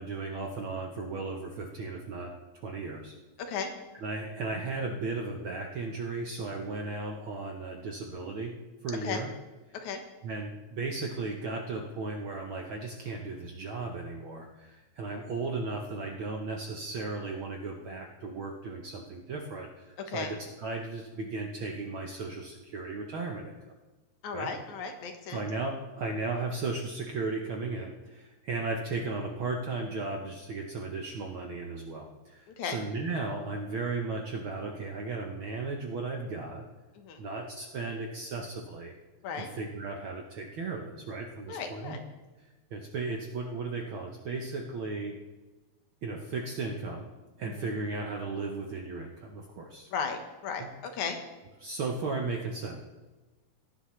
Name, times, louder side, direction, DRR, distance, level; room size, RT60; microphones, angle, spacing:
voice 1, 0.0-2.3 2.6-3.1 4.0-8.5 8.8-9.3 10.2-20.3 20.6-23.5 24.3-24.5 25.3-36.6 37.2-38.9 39.6-42.0 42.7-45.2 46.0-47.1 47.4-49.9 50.6-50.7 51.6-52.8, right 3 dB, 65° right, 1 dB, 1.3 m, -35 dB
voice 2, 24.2-25.4 32.5-32.8 37.0-37.2 39.2-39.5 41.5-42.0 47.4-47.7 49.9-51.2, left 5 dB, 80° left, 5 dB, 2.6 m, -35 dB
16.5 x 10.5 x 3.2 m, 1.2 s
omnidirectional pair, 3.4 m